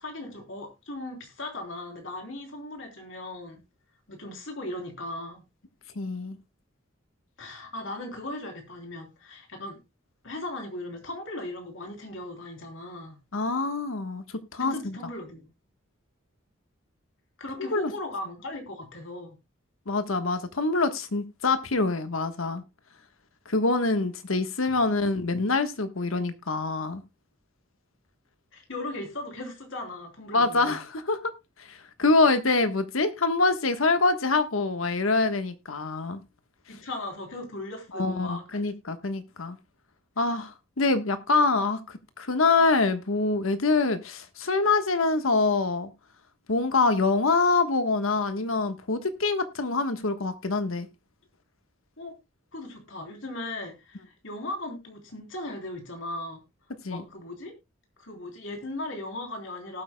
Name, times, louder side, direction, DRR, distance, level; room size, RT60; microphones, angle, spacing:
voice 1, 0.0-3.6 4.1-5.4 7.4-9.8 10.2-13.2 14.6-15.5 17.4-19.4 28.5-30.8 36.7-38.6 52.0-52.1 52.5-56.4 56.8-57.5 58.0-59.8, left 1 dB, 70° left, 3 dB, 3.4 m, -37 dB
voice 2, 5.9-6.4 13.3-14.2 14.5-15.0 17.7-17.9 19.9-22.6 23.5-27.0 30.3-31.3 31.6-36.2 37.9-39.6 40.2-41.8 42.2-45.9 46.5-50.9 56.8-57.0, left 3 dB, 85° left, 9 dB, 1.3 m, -25 dB
18.5 x 8.3 x 2.2 m, 0.22 s
head